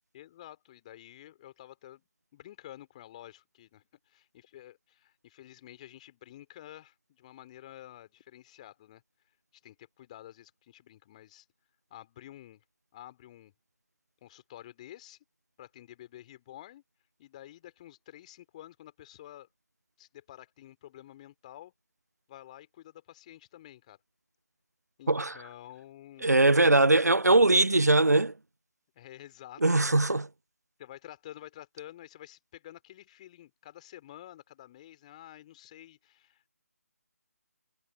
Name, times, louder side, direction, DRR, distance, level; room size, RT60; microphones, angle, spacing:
voice 1, 0.1-2.0 2.3-9.0 9.6-11.5 11.9-12.6 12.9-13.5 14.2-15.2 15.6-16.8 17.2-19.5 20.0-21.7 22.3-24.0 25.0-26.4 29.0-29.6 30.8-36.4, left 13 dB, 25° left, 3.9 m, -50 dB
voice 2, 26.2-28.3 29.6-30.3, right 2 dB, 90° right, 0.5 m, -21 dB
figure-of-eight pair, 150°, 9 cm